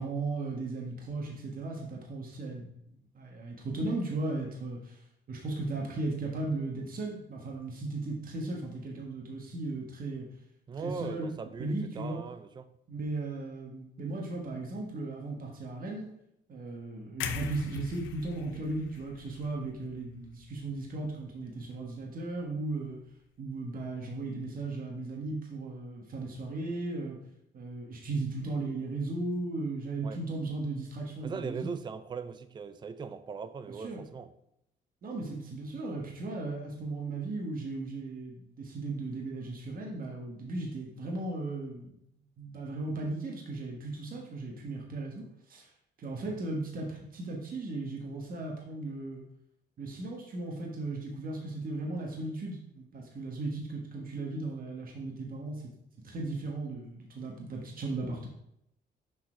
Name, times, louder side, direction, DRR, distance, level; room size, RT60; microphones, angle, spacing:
voice 1, 0.0-2.7 3.1-5.0 5.3-10.3 10.8-11.3 11.6-12.2 12.9-16.1 16.5-23.0 23.4-27.2 27.5-31.7 33.7-34.0 35.0-42.0 42.4-45.7 46.0-49.2 49.8-55.7 56.0-58.3, right 2 dB, 50° right, 1.4 m, -36 dB
voice 2, 10.7-12.7 30.0-30.2 31.2-34.3, right 5 dB, 25° right, 0.4 m, -39 dB
sound 1, 17.2-21.2 21.6-21.8, left 9 dB, 90° left, 0.6 m, -42 dB
6.3 x 4.3 x 4.5 m
cardioid pair, 110°, 19 cm